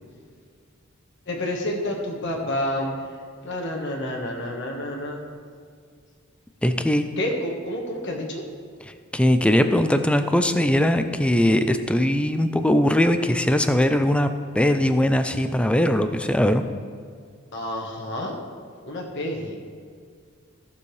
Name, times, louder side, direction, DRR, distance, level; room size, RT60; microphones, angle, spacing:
voice 1, 1.3-3.2 3.4-5.2 7.2-8.4 17.5-18.4 18.8-19.6, left 1 dB, 60° left, 0 dB, 1.5 m, -29 dB
voice 2, 6.6-7.0 9.1-16.6, left 1 dB, 5° left, 8 dB, 0.4 m, -20 dB
14.5 x 7.0 x 3.3 m, 2.1 s
head